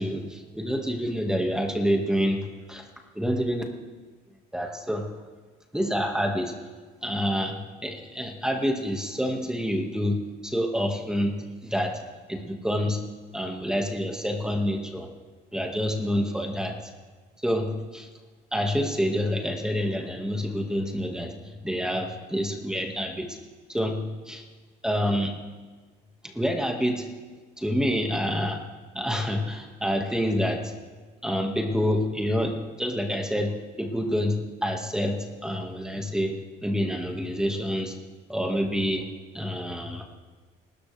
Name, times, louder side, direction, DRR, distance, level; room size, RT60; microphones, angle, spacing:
voice 1, 0.0-2.4 2.7-2.9 3.2-3.6 4.5-5.1 5.7-6.5 7.0-10.2 10.4-11.4 11.6-12.0 12.3-13.0 13.3-15.1 15.5-16.8 17.4-18.1 18.5-23.4 23.7-24.4 24.8-25.3 26.2-27.1 27.6-28.6 28.9-30.7 31.2-36.4 36.6-37.9 38.3-39.1 39.3-40.3, equal, 5° right, 2 dB, 1.9 m, -27 dB
23.5 x 13.0 x 3.4 m, 1.4 s
cardioid pair, 105°, 19 cm